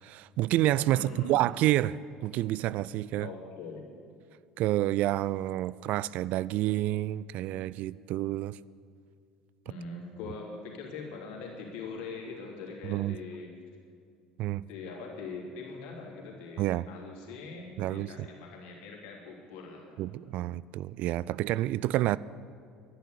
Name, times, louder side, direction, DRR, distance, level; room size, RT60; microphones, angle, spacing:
voice 1, 0.0-3.3 4.6-8.6 12.8-13.2 14.4-14.7 16.6-16.9 17.8-18.1 20.0-22.2, right 15 dB, 55° right, 19 dB, 0.3 m, -29 dB
voice 2, 0.9-1.4 3.2-3.8 9.6-13.5 14.7-20.4, left 4 dB, 65° left, -1 dB, 3.2 m, -42 dB
11.5 x 10.5 x 8.3 m, 2.3 s
hypercardioid pair, 65°, 3 cm